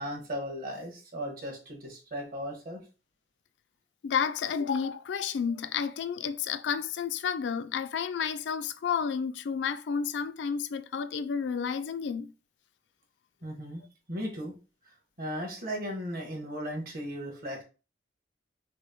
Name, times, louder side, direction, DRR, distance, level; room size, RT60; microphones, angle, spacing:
voice 1, 0.0-2.9 13.4-13.8 14.1-14.6 14.8-17.6, equal, 55° right, 1.4 m, -36 dB
voice 2, 4.0-12.3, left 6 dB, 80° left, 0.4 m, -31 dB
6.0 x 2.0 x 3.0 m
head